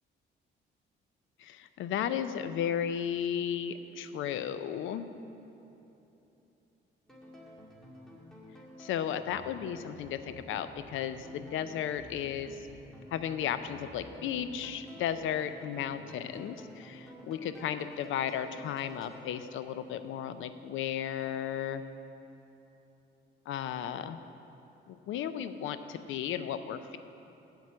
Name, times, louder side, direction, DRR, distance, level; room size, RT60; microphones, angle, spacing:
voice 1, 1.4-5.1 8.8-12.6 13.1-21.8 23.5-24.2 24.9-27.0, left 9 dB, 80° left, 11 dB, 0.6 m, -34 dB
sound 1, 7.1-19.1, equal, 5° left, 2.1 m, -51 dB
8.2 x 8.1 x 7.5 m, 3.0 s
cardioid pair, 90°, 20 cm